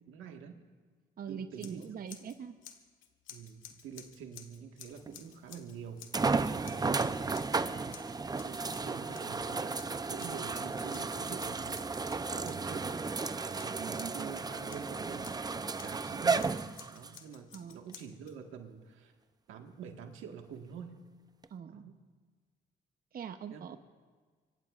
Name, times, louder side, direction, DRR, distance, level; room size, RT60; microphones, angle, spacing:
voice 1, 0.1-0.6 1.3-1.8 3.3-6.0 6.3-11.8 12.2-12.9 13.5-15.4 15.8-16.6 16.9-19.1 19.5-21.0 21.7-22.0 23.5-23.8, right 6 dB, 85° right, 4 dB, 1.6 m, -47 dB
voice 2, 1.2-2.5 13.8-14.3 17.5-17.8 21.5-21.8 23.1-23.8, right 7 dB, 50° right, 8 dB, 0.8 m, -42 dB
Scissors, 1.6-2.4 2.6-6.3 6.6-7.6 7.9-9.4 9.7-14.2 14.7-16.0 16.4-18.3, left 9 dB, 90° left, 1.4 m, -53 dB
sound 1, 5.1-5.2 6.1-17.2 17.9-18.0 21.4-21.5, right 4 dB, 20° right, 0.5 m, -34 dB
25.0 x 23.5 x 2.5 m, 1.5 s
cardioid pair, 90°, 20 cm